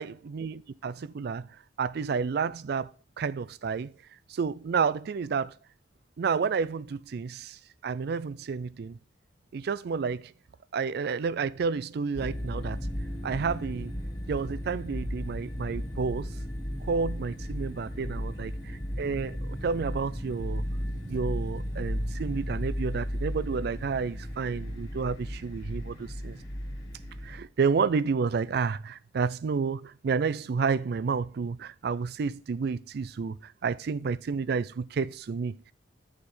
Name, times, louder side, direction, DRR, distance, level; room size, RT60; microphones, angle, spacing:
voice 1, 0.0-1.5 1.8-2.9 3.2-3.9 4.3-5.5 6.2-7.6 7.8-9.0 9.5-10.3 10.7-12.8 13.2-13.9 14.3-16.4 16.8-18.5 19.0-20.6 21.1-26.4 27.2-35.7, right 5 dB, 60° right, 0.4 m, -30 dB
sound 1, 12.1-27.4, equal, 20° left, 1.5 m, -35 dB
7.3 x 4.9 x 4.4 m
head